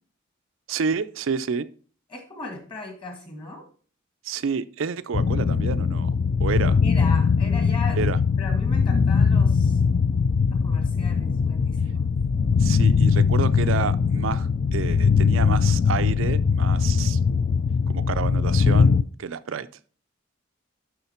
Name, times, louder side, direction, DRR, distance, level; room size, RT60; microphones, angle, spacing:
voice 1, 0.7-1.7 4.2-6.1 6.4-6.8 8.0-8.2 12.6-17.2 17.9-19.7, right 6 dB, 75° right, 13 dB, 0.5 m, -29 dB
voice 2, 2.1-3.6 6.8-8.0 8.4-9.8 10.5-12.1, left 2 dB, 25° left, 4 dB, 1.8 m, -37 dB
sound 1, 5.1-19.0, left 5 dB, 45° left, 0.3 m, -21 dB
11.5 x 3.8 x 4.3 m, 0.42 s
head